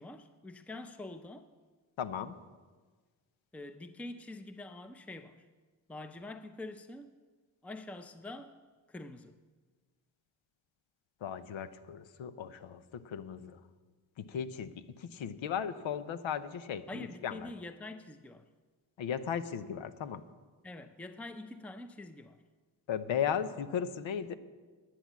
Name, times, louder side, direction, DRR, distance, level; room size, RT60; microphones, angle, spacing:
voice 1, 0.0-1.5 3.5-5.4 5.9-7.1 7.6-8.5 8.9-9.3 16.9-18.4 20.6-22.4, left 2 dB, 5° left, 9 dB, 0.7 m, -45 dB
voice 2, 2.0-2.4 11.2-13.6 14.2-17.5 19.0-20.2 22.9-24.3, left 8 dB, 75° left, 12 dB, 0.8 m, -36 dB
10.0 x 9.9 x 7.3 m, 1.4 s
cardioid pair, 55°, 46 cm